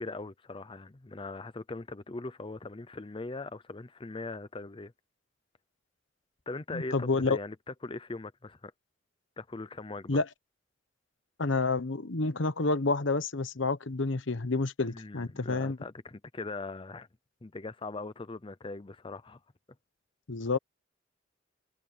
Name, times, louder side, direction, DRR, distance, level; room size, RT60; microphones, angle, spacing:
voice 1, 0.0-4.9 6.5-7.6 7.8-8.7 9.4-10.2 14.8-17.1 17.4-19.4, left 3 dB, 25° left, 0.6 m, -40 dB
voice 2, 6.7-7.4 10.1-10.3 11.4-15.8 20.3-20.6, left 3 dB, 75° left, 1.1 m, -29 dB
head